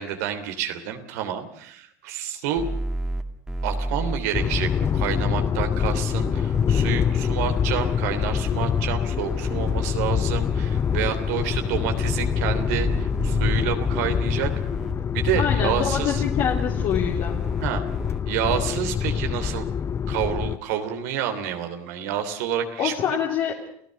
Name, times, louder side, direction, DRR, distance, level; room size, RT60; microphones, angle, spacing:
voice 1, 0.0-2.7 3.6-14.5 15.1-16.2 17.6-17.8 18.3-19.7 20.1-22.9, right 9 dB, 80° right, 6 dB, 3.2 m, -29 dB
sound 1, 2.6-5.2 6.2-8.8 9.2-9.9 10.4-13.5 13.8-14.9 15.8-18.2, right 2 dB, 5° right, 2.5 m, -33 dB
sound 2, 4.3-20.6, left 7 dB, 30° left, 0.8 m, -25 dB
voice 2, 15.4-17.5 22.8-23.6, left 8 dB, 60° left, -1 dB, 3.3 m, -26 dB
29.5 x 15.5 x 6.5 m, 0.64 s
supercardioid pair, 100°, 8 cm